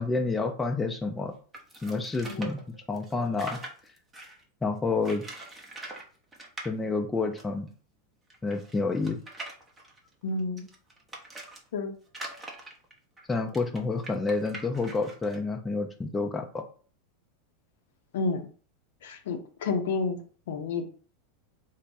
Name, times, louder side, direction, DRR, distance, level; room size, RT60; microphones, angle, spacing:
voice 1, 0.0-1.3 1.8-2.6 2.9-3.6 4.6-5.2 6.6-7.7 8.4-9.2 13.3-16.6, left 3 dB, 15° left, 4 dB, 0.4 m, -29 dB
sound 1, 1.5-4.4 5.0-6.1 6.3-6.7 7.4-7.5 7.7-7.8 8.3-11.6 12.1-15.4, right 2 dB, 15° right, 0.7 m, -43 dB
voice 2, 10.2-10.6 11.7-11.9 18.1-18.4 19.0-20.2 20.5-20.9, left 4 dB, 75° left, 5 dB, 0.5 m, -30 dB
3.2 x 2.0 x 2.6 m, 0.41 s
hypercardioid pair, 100°, 0 cm